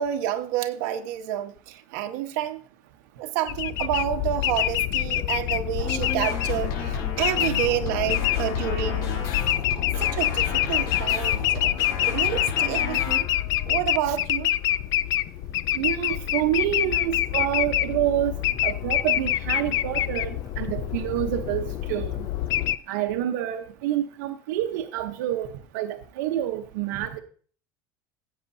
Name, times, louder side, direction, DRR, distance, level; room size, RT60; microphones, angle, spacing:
voice 1, 0.0-2.6 3.2-9.3 10.0-11.7 12.1-13.3 13.7-14.5, right 11 dB, 70° right, 1.2 m, -29 dB
sound 1, 3.5-22.8, left 13 dB, 40° left, 0.4 m, -26 dB
sound 2, 5.8-13.2, left 3 dB, 70° left, 5.1 m, -34 dB
voice 2, 15.7-18.3 18.6-22.3 22.9-27.2, right 12 dB, 90° right, 0.9 m, -28 dB
16.0 x 8.5 x 2.7 m
cardioid pair, 170°, 10 cm